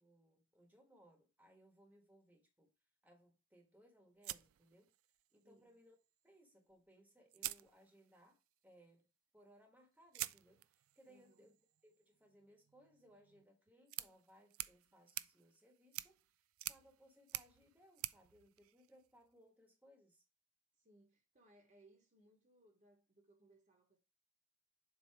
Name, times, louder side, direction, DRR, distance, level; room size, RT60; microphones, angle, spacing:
voice 1, 0.0-2.7 3.0-4.9 5.3-6.0 6.2-9.1 9.3-11.5 11.8-16.2 16.7-20.2, equal, 5° right, 1.3 m, -67 dB
sound 1, 4.2-5.4 6.7-6.8 7.3-8.3 10.1-19.3, right 17 dB, 80° right, 0.3 m, -49 dB
voice 2, 5.4-5.8 11.1-11.6 20.8-24.0, right 1 dB, 35° right, 1.2 m, -68 dB
7.4 x 2.9 x 4.7 m
head